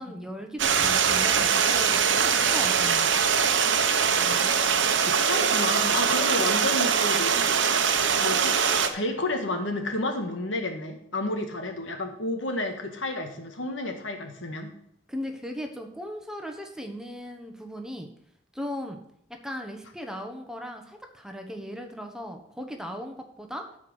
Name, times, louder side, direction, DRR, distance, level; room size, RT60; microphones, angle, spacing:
voice 1, 0.0-3.2 15.1-18.1 18.5-19.0 19.3-23.7, equal, 5° right, 4 dB, 1.1 m, -37 dB
Stream, 0.6-8.9, right 6 dB, 75° right, 0.9 m, -22 dB
voice 2, 4.1-4.6 5.1-7.9 8.2-8.6 8.9-14.7, left 2 dB, 85° left, 5 dB, 1.6 m, -31 dB
12.5 x 4.8 x 6.3 m, 0.70 s
head